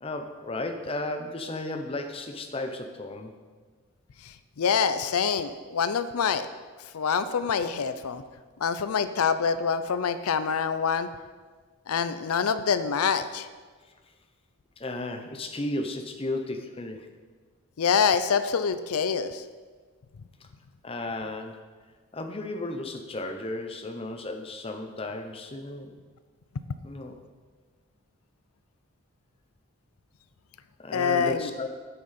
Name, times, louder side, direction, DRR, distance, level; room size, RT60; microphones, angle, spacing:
voice 1, 0.0-3.3 14.8-17.1 20.8-21.6 22.1-26.0 26.8-27.1 30.8-31.7, left 2 dB, 25° left, 5 dB, 0.6 m, -34 dB
voice 2, 4.2-6.5 6.9-8.2 8.6-11.1 11.9-13.5 17.8-19.4 30.9-31.5, left 6 dB, 90° left, 12 dB, 0.5 m, -26 dB
9.2 x 7.9 x 4.2 m, 1.5 s
head